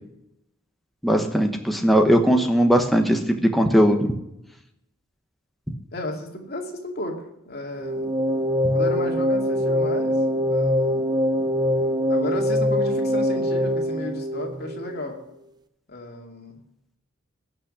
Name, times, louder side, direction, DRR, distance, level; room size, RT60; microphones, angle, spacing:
voice 1, 1.0-3.2 3.5-4.1, equal, ahead, 3 dB, 1.0 m, -19 dB
voice 2, 5.9-8.2 8.7-11.0 12.1-15.2 15.9-16.5, left 1 dB, 50° left, 2 dB, 2.5 m, -34 dB
sound 1, 7.8-15.0, left 1 dB, 20° right, 0.6 m, -23 dB
16.5 x 6.1 x 10.0 m, 0.85 s
head